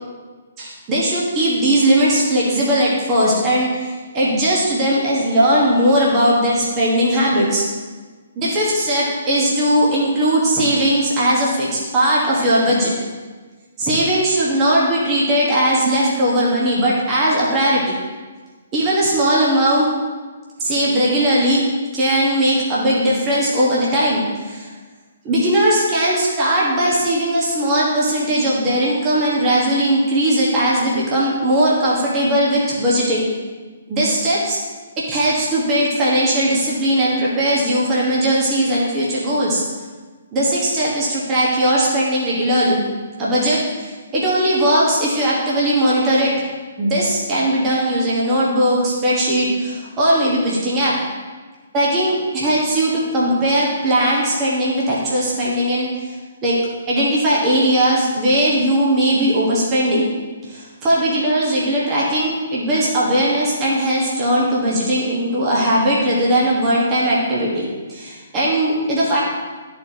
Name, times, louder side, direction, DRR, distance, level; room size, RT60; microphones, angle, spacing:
voice 1, 0.6-7.6 8.4-12.9 13.8-17.8 18.7-19.9 20.6-21.6 21.9-24.7 25.2-33.2 33.9-34.6 35.1-39.6 40.3-42.8 43.2-46.3 46.8-50.9 51.7-56.1 56.4-56.5 56.9-60.1 60.5-69.2, right 1 dB, 20° right, -6 dB, 1.5 m, -18 dB
12.5 x 4.4 x 3.0 m, 1.4 s
figure-of-eight pair, 130°, 0 cm